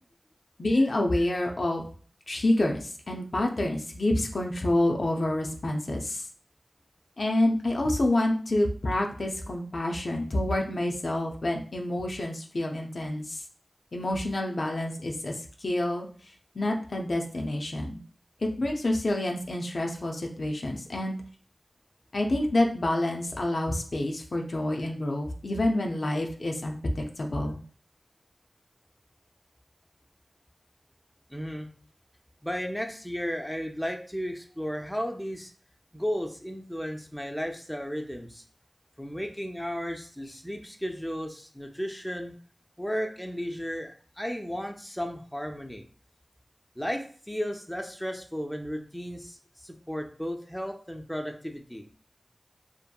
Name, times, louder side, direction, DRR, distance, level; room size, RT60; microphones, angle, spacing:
voice 1, 0.6-1.8 2.3-6.2 7.2-13.4 13.9-15.3 15.6-16.1 16.6-18.0 18.4-21.2 22.1-27.6, left 1 dB, 70° left, 1 dB, 0.4 m, -28 dB
voice 2, 31.3-31.7 32.4-35.5 35.9-38.4 39.0-42.3 42.8-45.8 46.8-51.8, equal, 5° left, 3 dB, 0.4 m, -34 dB
2.7 x 2.5 x 2.2 m, 0.43 s
cardioid pair, 45°, 0 cm